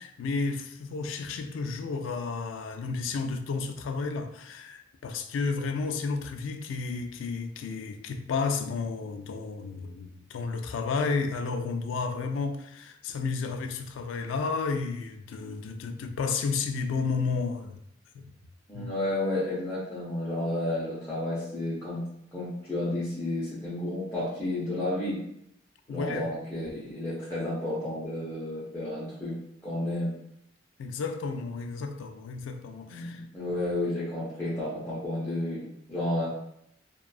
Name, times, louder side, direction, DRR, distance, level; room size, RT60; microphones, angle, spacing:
voice 1, 0.0-17.8 18.1-18.2 18.7-18.9 25.9-26.3 30.8-33.2, left 4 dB, 80° left, 0.3 m, -32 dB
voice 2, 18.7-22.0 22.3-25.2 25.9-29.3 29.6-30.1 32.9-35.6 35.9-36.3, left 1 dB, 15° left, 0.7 m, -31 dB
2.5 x 2.3 x 2.3 m
head